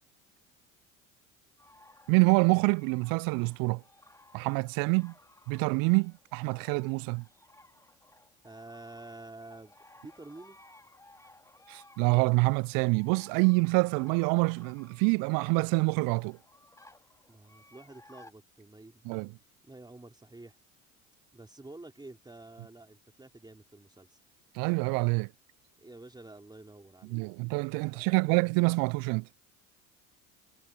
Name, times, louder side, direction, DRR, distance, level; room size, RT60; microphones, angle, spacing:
sound 1, 1.6-18.3, left 1 dB, 5° left, 3.9 m, -58 dB
voice 1, 2.1-3.8 4.3-5.1 5.5-7.2 11.7-16.4 19.0-19.3 24.5-25.3 27.1-29.3, right 31 dB, 55° right, 0.6 m, -26 dB
voice 2, 8.4-9.8 10.0-10.6 17.3-19.2 19.6-20.6 21.3-24.2 25.8-27.2 27.8-28.3, right 2 dB, 10° right, 4.1 m, -49 dB
hypercardioid pair, 70°, 42 cm